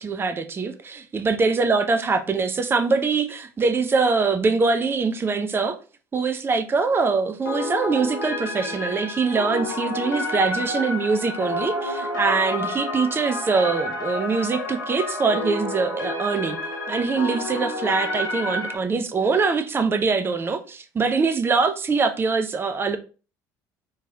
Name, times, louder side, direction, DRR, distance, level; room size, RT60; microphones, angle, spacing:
voice 1, 0.0-5.8 6.1-16.6 16.9-23.0, right 4 dB, 20° right, 0.5 m, -23 dB
sound 1, 7.5-18.8, left 1 dB, 85° left, 0.7 m, -29 dB
3.0 x 3.0 x 3.5 m
figure-of-eight pair, 60°, 10 cm